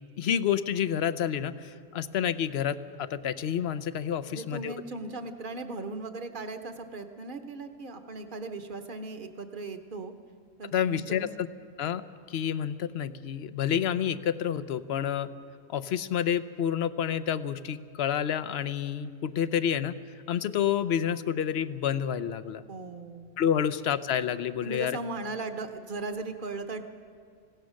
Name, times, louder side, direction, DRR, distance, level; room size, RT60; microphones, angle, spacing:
voice 1, 0.2-4.7 10.7-11.5 11.8-12.0 12.3-15.3 15.7-19.9 20.3-22.6 23.4-25.0, left 9 dB, 55° left, 14 dB, 0.8 m, -29 dB
voice 2, 4.3-10.1 10.6-11.3 22.7-23.3 23.6-23.8 24.6-26.8, right 3 dB, 40° right, 7 dB, 1.1 m, -38 dB
26.5 x 16.5 x 6.4 m, 2.2 s
omnidirectional pair, 1.5 m